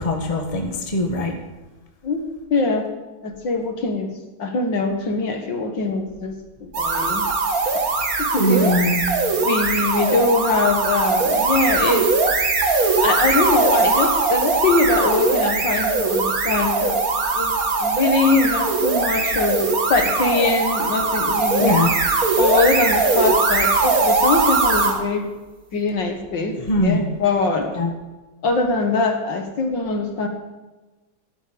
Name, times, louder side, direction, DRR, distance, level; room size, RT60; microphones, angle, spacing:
voice 1, 0.0-1.3 8.4-9.0 21.6-21.9 26.7-27.0 27.8-27.9, left 1 dB, 20° left, 3 dB, 1.4 m, -21 dB
voice 2, 2.5-2.9 3.2-6.3 6.6-7.3 8.2-8.7 9.4-12.1 13.0-17.0 17.3-21.8 22.4-25.3 25.7-27.7 28.4-30.3, left 3 dB, 60° left, 4 dB, 2.2 m, -22 dB
sound 1, 6.7-25.0, right 3 dB, 45° right, 1.9 m, -20 dB
14.5 x 11.5 x 5.2 m, 1.2 s
omnidirectional pair, 2.3 m